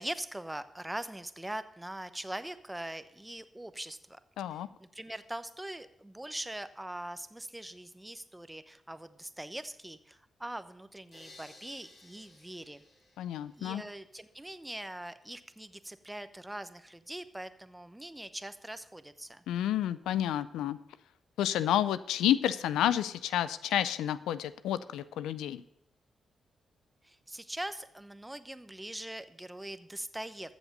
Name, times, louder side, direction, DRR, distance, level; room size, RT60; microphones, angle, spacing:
voice 1, 0.0-4.2 4.5-12.8 13.6-19.4 27.0-30.5, right 1 dB, 15° right, 12 dB, 0.9 m, -42 dB
voice 2, 4.4-4.7 13.2-13.8 19.5-20.8 21.4-25.6, left 11 dB, 85° left, 15 dB, 0.4 m, -30 dB
sound 1, 11.1-14.1, left 2 dB, 65° left, 5.2 m, -57 dB
14.0 x 7.2 x 5.3 m, 0.75 s
supercardioid pair, 45°, 0 cm